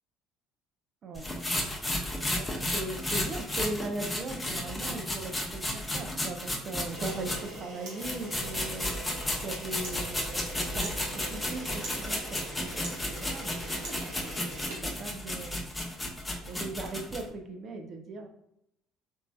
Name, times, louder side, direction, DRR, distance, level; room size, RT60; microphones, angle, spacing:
sound 1, 1.2-7.6 8.0-17.2, left 1 dB, 15° left, 0.7 m, -33 dB
voice 1, 2.3-14.1 14.4-15.6 16.2-18.3, right 2 dB, 45° right, 4 dB, 0.5 m, -39 dB
Camera, 6.8-15.6, right 2 dB, 75° right, 1.1 m, -43 dB
3.1 x 2.6 x 2.2 m, 0.79 s
hypercardioid pair, 60°, 0 cm